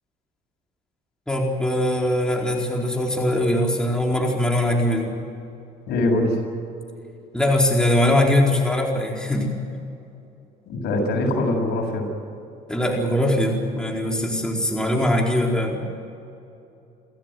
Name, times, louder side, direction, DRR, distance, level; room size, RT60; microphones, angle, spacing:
voice 1, 1.3-5.2 7.3-9.5 12.7-15.8, left 1 dB, 5° left, -1 dB, 4.3 m, -21 dB
voice 2, 5.9-6.4 10.7-12.1, left 1 dB, 75° left, 1 dB, 7.0 m, -22 dB
29.5 x 14.0 x 9.3 m, 2.7 s
cardioid pair, 110°, 17 cm